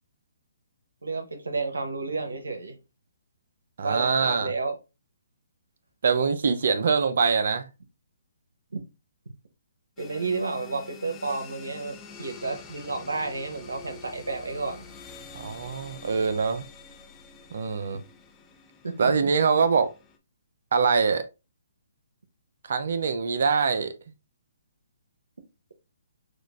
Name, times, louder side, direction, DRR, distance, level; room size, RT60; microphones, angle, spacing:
voice 1, 1.0-2.8 3.8-4.8 8.7-8.8 10.0-14.8 18.8-19.3, right 3 dB, 85° right, 0.9 m, -31 dB
voice 2, 3.8-4.5 6.0-7.7 15.3-16.7 17.5-18.0 19.0-19.9 20.7-21.2 22.7-23.9, right 5 dB, 65° right, 0.6 m, -24 dB
sound 1, 10.0-20.2, left 5 dB, 20° left, 0.6 m, -47 dB
6.2 x 2.4 x 2.5 m
hypercardioid pair, 145°, 0 cm